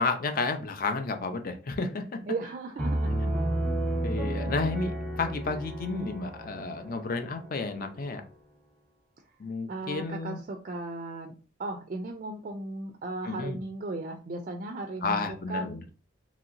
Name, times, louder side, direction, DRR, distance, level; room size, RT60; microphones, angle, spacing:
voice 1, 0.0-2.2 4.0-8.2 9.4-10.4 13.2-13.6 15.0-15.8, left 3 dB, 45° left, 7 dB, 0.5 m, -31 dB
voice 2, 2.3-3.3 9.7-11.3 11.6-15.8, right 2 dB, 40° right, 4 dB, 0.3 m, -36 dB
Piano, 2.8-8.3, right 1 dB, ahead, 0.8 m, -32 dB
3.0 x 2.8 x 2.5 m, 0.36 s
head